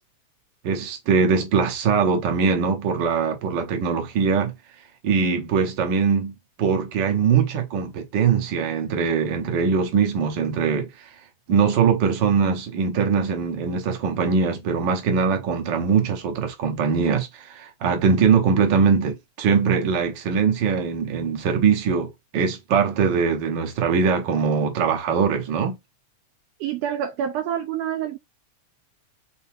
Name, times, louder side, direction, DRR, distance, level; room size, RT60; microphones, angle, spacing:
voice 1, 0.6-4.6 5.0-11.1 11.5-25.8, right 6 dB, 55° right, 1.2 m, -22 dB
voice 2, 26.6-28.2, right 9 dB, 85° right, 1.4 m, -27 dB
4.6 x 3.9 x 2.6 m
omnidirectional pair, 3.4 m